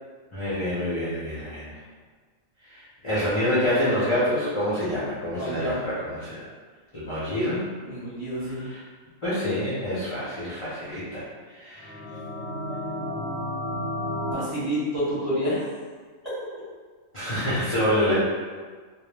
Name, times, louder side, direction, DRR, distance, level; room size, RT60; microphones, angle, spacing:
voice 1, 0.3-1.6 2.6-6.5 6.9-7.7 8.5-8.8 9.2-11.2 11.5-11.9 17.1-18.2, left 1 dB, 40° left, -11 dB, 0.4 m, -27 dB
voice 2, 5.3-5.8 7.8-8.7 14.3-15.6 16.2-16.3, equal, 35° right, -10 dB, 0.8 m, -28 dB
sound 1, 11.8-14.3, left 1 dB, 65° left, 0.7 m, -32 dB
2.1 x 2.1 x 3.2 m, 1.5 s
omnidirectional pair, 1.4 m